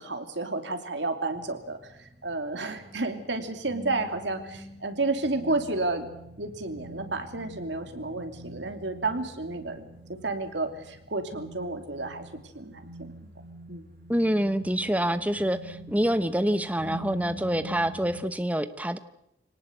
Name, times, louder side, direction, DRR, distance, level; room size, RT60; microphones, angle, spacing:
voice 1, 0.0-6.1 6.4-9.8 10.1-12.3 12.5-13.1 13.7-13.9, right 2 dB, 75° right, 7 dB, 2.8 m, -31 dB
sound 1, 1.3-18.2, right 1 dB, 60° right, 6.2 m, -45 dB
voice 2, 14.1-19.0, equal, 10° right, 11 dB, 0.9 m, -26 dB
25.0 x 18.5 x 8.0 m, 0.79 s
head